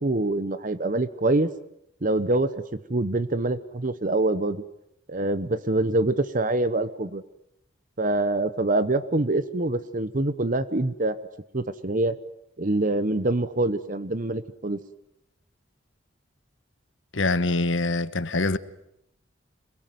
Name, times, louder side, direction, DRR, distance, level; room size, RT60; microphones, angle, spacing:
voice 1, 0.0-1.5 2.0-2.5 2.9-4.6 5.1-7.2 8.0-11.2 11.5-12.2 12.6-14.8, right 2 dB, 45° right, 1.0 m, -25 dB
voice 2, 17.1-18.6, left 2 dB, 75° left, 1.3 m, -24 dB
26.5 x 22.0 x 9.3 m
head